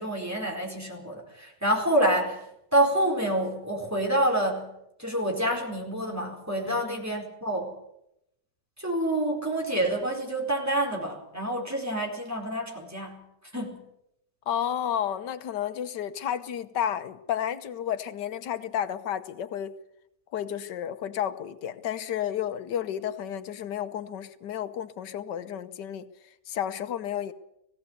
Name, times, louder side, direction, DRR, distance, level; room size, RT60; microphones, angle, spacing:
voice 1, 0.0-2.4 2.7-4.7 5.0-7.7 8.8-13.2 13.5-13.8, right 1 dB, 10° right, 0 dB, 4.5 m, -27 dB
voice 2, 6.6-7.0 14.5-19.7 20.3-27.3, left 10 dB, 90° left, 11 dB, 1.6 m, -32 dB
19.0 x 16.5 x 8.2 m, 0.82 s
omnidirectional pair, 1.8 m